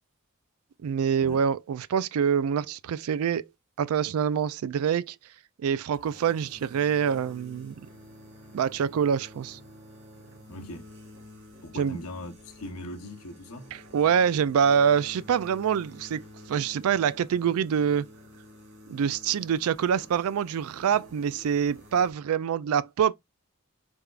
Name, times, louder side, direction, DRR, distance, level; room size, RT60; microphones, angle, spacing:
voice 1, 0.8-3.5 3.8-5.2 5.6-7.9 8.5-9.6 11.8-12.0 13.9-16.2 16.5-18.1 18.9-23.1, right 7 dB, 75° right, 0.3 m, -25 dB
sound 1, 5.9-22.1, left 1 dB, 50° right, 1.3 m, -50 dB
voice 2, 10.5-10.9 11.6-13.7, left 1 dB, 80° left, 0.9 m, -40 dB
3.5 x 3.3 x 2.4 m
head